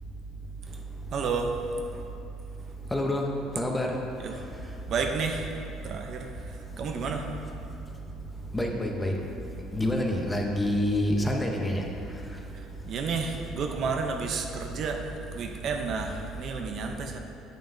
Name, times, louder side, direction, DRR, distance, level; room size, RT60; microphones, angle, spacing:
voice 1, 1.1-1.6 1.9-2.0 4.2-4.4 4.9-5.5 5.8-7.4 8.0-8.1 12.5-17.2, right 5 dB, 40° right, 3 dB, 0.6 m, -32 dB
voice 2, 2.9-3.3 3.6-3.9 8.5-9.1 9.7-11.8, left 1 dB, 10° left, 1 dB, 0.7 m, -27 dB
9.2 x 9.1 x 2.6 m, 2.7 s
cardioid pair, 160°, 0 cm